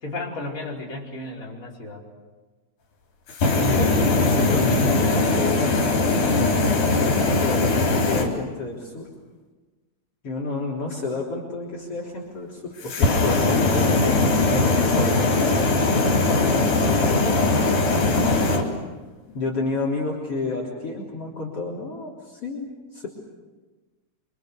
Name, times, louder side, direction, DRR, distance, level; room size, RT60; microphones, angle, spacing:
voice 1, 0.0-2.0, left 2 dB, 25° left, -4 dB, 5.1 m, -34 dB
sound 1, 3.3-8.3 12.8-18.6, left 2 dB, 80° left, 5.3 m, -20 dB
voice 2, 3.5-5.9 7.0-9.1 10.2-13.9 14.5-17.2 19.3-23.1, left 3 dB, 50° left, 0 dB, 4.6 m, -30 dB
27.0 x 25.5 x 6.7 m, 1.2 s
omnidirectional pair, 3.5 m